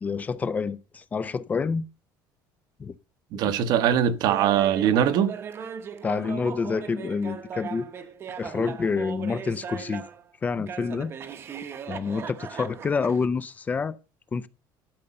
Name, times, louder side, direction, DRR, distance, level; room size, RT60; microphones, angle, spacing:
voice 1, 0.0-1.8 2.8-2.9 6.0-7.9 8.4-10.0 10.4-11.1 11.9-14.0 14.3-14.5, left 5 dB, 20° left, 0.5 m, -28 dB
voice 2, 3.3-5.3, right 9 dB, 55° right, 1.0 m, -22 dB
Laughter, 4.3-10.2 10.7-13.3, right 7 dB, 30° right, 0.9 m, -38 dB
12.0 x 5.3 x 6.8 m
cardioid pair, 165°, 8 cm